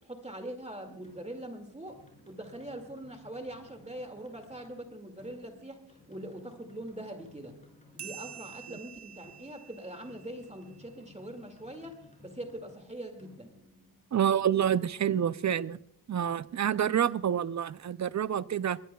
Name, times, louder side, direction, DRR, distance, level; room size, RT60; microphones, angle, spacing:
voice 1, 0.0-2.0 2.3-5.8 6.1-7.6 7.9-13.5, right 1 dB, 15° right, 2.2 m, -42 dB
sound 1, 1.0-14.6, left 2 dB, 20° left, 6.3 m, -58 dB
sound 2, 8.0-11.0, right 9 dB, 80° right, 0.8 m, -48 dB
voice 2, 14.1-15.8 16.1-18.8, right 9 dB, 45° right, 0.5 m, -28 dB
21.0 x 20.5 x 2.3 m
wide cardioid pair, 90°, 39 cm